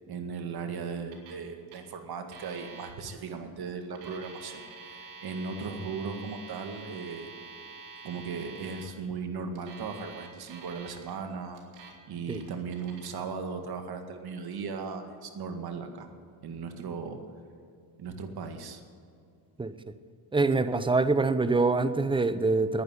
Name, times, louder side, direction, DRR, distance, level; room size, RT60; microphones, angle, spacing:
voice 1, 0.1-7.3 8.0-16.1 16.4-17.2 18.0-18.8, right 5 dB, 50° right, 6 dB, 2.0 m, -37 dB
Alarm, 1.1-1.4 1.7-1.8 2.3-2.9 3.8-8.8 9.6-11.1 11.5-11.9 12.3-13.1, right 4 dB, 85° right, 2.7 m, -47 dB
voice 2, 20.3-22.8, right 3 dB, 10° right, 12 dB, 0.7 m, -25 dB
10.5 x 10.5 x 9.7 m, 2.4 s
cardioid pair, 95°, 47 cm